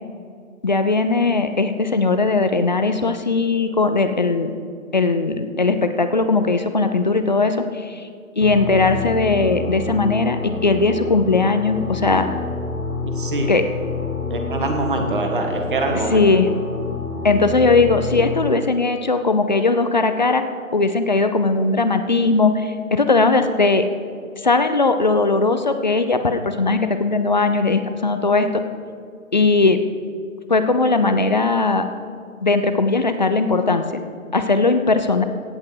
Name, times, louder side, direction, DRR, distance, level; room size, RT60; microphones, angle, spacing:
voice 1, 0.6-4.5 4.9-8.1 8.4-12.3 13.5-13.7 15.9-16.5 17.2-20.4 20.7-23.9 24.4-28.6 29.3-29.8 30.5-31.8 32.4-33.8 34.3-35.2, left 3 dB, 35° left, 9 dB, 0.6 m, -19 dB
sound 1, 8.4-18.5, left 3 dB, 85° left, 1.6 m, -28 dB
voice 2, 13.0-13.5 14.3-16.2, right 2 dB, 35° right, 4 dB, 1.5 m, -24 dB
16.0 x 8.4 x 4.8 m, 2.2 s
figure-of-eight pair, 150°, 42 cm